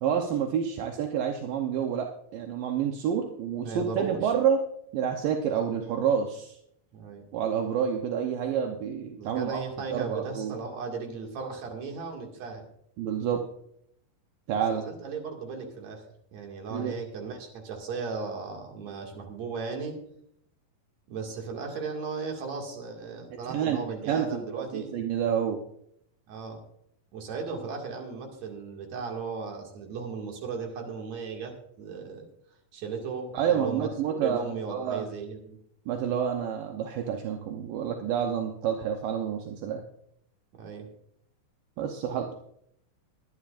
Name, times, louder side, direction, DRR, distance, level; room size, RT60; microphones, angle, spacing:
voice 1, 0.0-4.6 4.9-6.6 7.3-9.6 9.9-10.5 13.0-13.4 14.5-14.8 16.7-16.9 23.5-25.6 33.3-35.1 35.9-39.8 41.8-42.3, right 8 dB, 75° right, 3 dB, 2.6 m, -28 dB
voice 2, 3.5-4.3 6.9-7.2 9.2-12.6 14.7-16.0 16.3-20.0 21.1-24.9 26.3-26.6 27.1-32.3 32.7-35.6 40.5-40.9, right 5 dB, 55° right, 2 dB, 3.2 m, -36 dB
22.0 x 11.0 x 2.5 m, 0.71 s
omnidirectional pair, 4.1 m